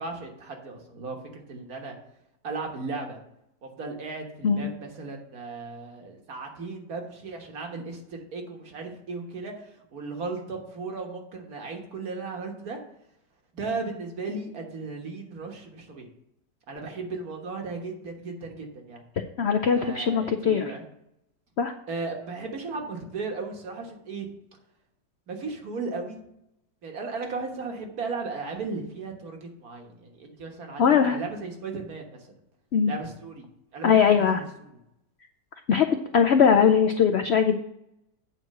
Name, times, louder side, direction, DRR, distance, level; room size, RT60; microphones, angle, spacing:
voice 1, 0.0-2.0 2.4-3.2 3.6-12.8 13.5-16.1 16.7-19.0 19.7-20.8 21.9-24.3 25.3-26.2 26.8-32.3 32.9-33.5 33.7-34.7, right 3 dB, 60° right, 2 dB, 1.8 m, -36 dB
voice 2, 19.4-20.7 21.6-21.7 30.8-31.2 32.7-32.9 33.8-34.4 35.7-35.9 36.1-37.5, left 7 dB, 90° left, 6 dB, 0.5 m, -20 dB
8.6 x 4.6 x 6.6 m, 0.79 s
omnidirectional pair, 1.8 m